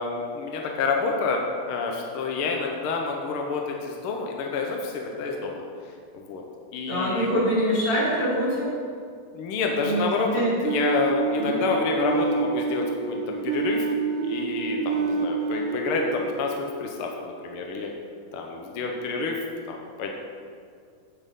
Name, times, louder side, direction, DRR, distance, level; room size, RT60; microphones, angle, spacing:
voice 1, 0.0-5.6 6.1-6.4 6.7-7.3 9.3-10.3 10.6-13.9 14.2-17.9 18.3-19.4 19.7-20.1, left 4 dB, 70° left, 1 dB, 1.3 m, -28 dB
voice 2, 6.9-8.7 9.8-10.1 10.3-10.6 11.4-11.6, equal, 45° left, -7 dB, 4.2 m, -24 dB
sound 1, 10.7-17.4, right 4 dB, 85° right, 2.3 m, -28 dB
9.6 x 8.6 x 5.4 m, 2.2 s
omnidirectional pair, 3.6 m